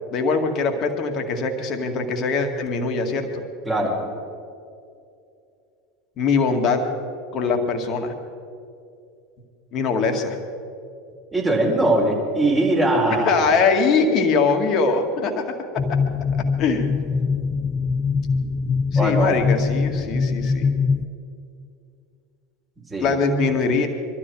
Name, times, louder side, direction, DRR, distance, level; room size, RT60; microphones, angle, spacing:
voice 1, 0.1-3.4 6.2-6.9 7.3-8.1 9.7-10.4 13.2-15.6 16.6-16.9 18.9-20.7 23.0-23.9, left 4 dB, 45° left, 5 dB, 2.1 m, -22 dB
voice 2, 11.3-13.4 18.9-19.4 22.9-23.1, right 1 dB, 15° right, -2 dB, 4.8 m, -21 dB
sound 1, 15.8-21.1, left 5 dB, 30° left, 0.7 m, -23 dB
23.0 x 13.0 x 4.8 m, 2.4 s
hypercardioid pair, 80°, 0 cm